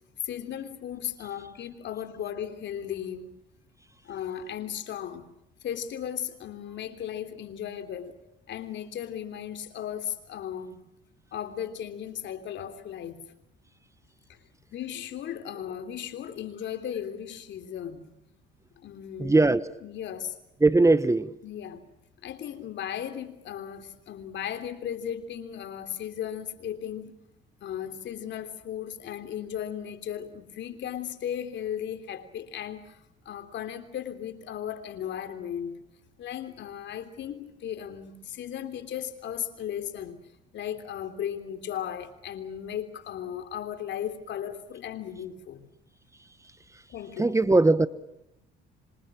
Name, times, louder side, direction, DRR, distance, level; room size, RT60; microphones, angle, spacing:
voice 1, 0.2-3.4 4.0-5.3 5.6-8.2 8.5-10.9 11.3-13.2 14.3-14.4 14.7-18.1 18.8-19.4 19.8-20.4 21.4-21.8 22.2-27.1 27.6-33.0 33.2-35.8 36.2-40.2 40.5-45.7 46.9-47.3, left 9 dB, 65° left, 3.3 m, -36 dB
voice 2, 19.2-19.7 20.6-21.4 47.2-47.9, right 2 dB, 15° right, 1.2 m, -20 dB
26.5 x 26.5 x 6.2 m
cardioid pair, 90°, 20 cm